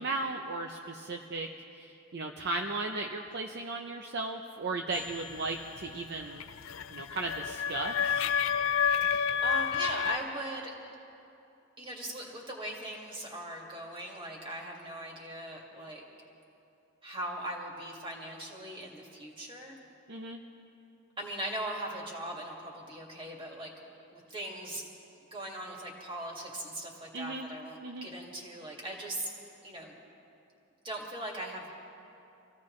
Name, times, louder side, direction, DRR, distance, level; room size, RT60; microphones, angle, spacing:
voice 1, 0.0-6.5 6.9-8.3 20.1-20.4 27.1-27.5 27.8-28.1, right 3 dB, 50° right, 3 dB, 0.7 m, -36 dB
sound 1, 4.9-10.2, left 8 dB, 70° left, 0.4 m, -30 dB
voice 2, 9.0-10.7 11.8-16.0 17.0-19.8 21.2-23.7 24.1-24.8 25.3-29.3 29.6-29.9 30.8-31.8, right 1 dB, 25° right, -1 dB, 2.1 m, -39 dB
25.5 x 16.0 x 3.2 m, 2.7 s
head